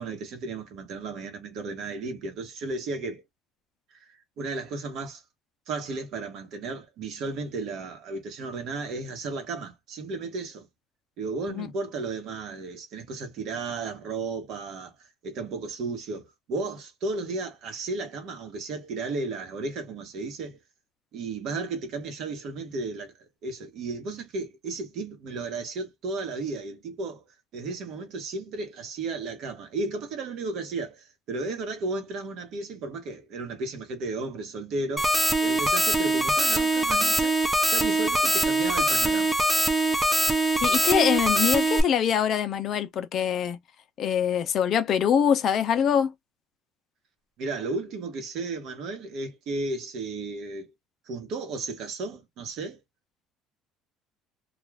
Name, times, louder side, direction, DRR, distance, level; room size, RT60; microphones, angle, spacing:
voice 1, 0.0-3.2 3.9-5.2 5.7-10.7 11.2-14.9 15.2-20.6 21.1-23.1 23.4-27.2 27.5-37.4 37.6-39.4 47.4-50.7 51.1-52.8, right 3 dB, 55° right, 1.1 m, -34 dB
sound 1, 35.0-41.8, right 1 dB, 5° right, 0.5 m, -23 dB
voice 2, 40.6-43.6 44.0-46.1, left 8 dB, 45° left, 0.5 m, -24 dB
2.4 x 2.3 x 3.2 m
cardioid pair, 150°, 0 cm